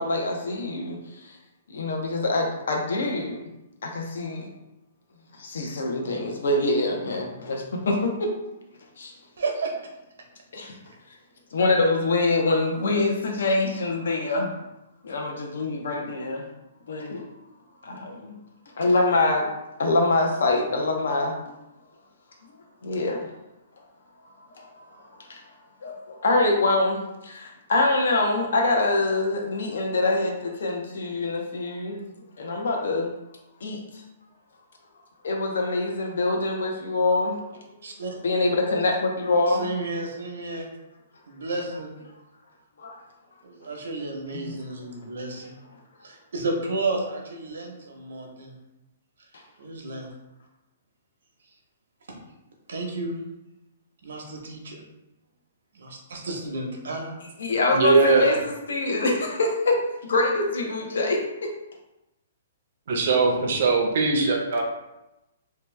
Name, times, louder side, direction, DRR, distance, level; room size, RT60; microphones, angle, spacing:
voice 1, 0.0-1.4 1.7-3.4 3.8-4.5 5.4-8.3 9.0-9.1 10.5-10.7 11.5-14.5 15.0-16.5 16.9-17.2 17.8-18.4 18.8-19.5 19.8-21.5 22.8-23.3 24.6-24.7 25.3-25.4 25.8-33.1 33.6-33.8 35.2-37.4 38.2-39.7 42.8-43.0 44.3-44.4 57.4-61.5, left 2 dB, 75° left, 1 dB, 0.6 m, -25 dB
voice 2, 9.4-9.7 37.8-38.2 39.5-40.7 41.3-41.9 43.4-45.4 46.0-48.5 49.6-50.1 52.7-53.2 54.0-54.8 55.7-57.1, right 2 dB, 75° right, 1 dB, 0.8 m, -32 dB
voice 3, 57.7-58.4 62.9-64.6, right 4 dB, 45° right, 0 dB, 0.5 m, -21 dB
2.8 x 2.2 x 3.3 m, 0.93 s
hypercardioid pair, 180°, 0 cm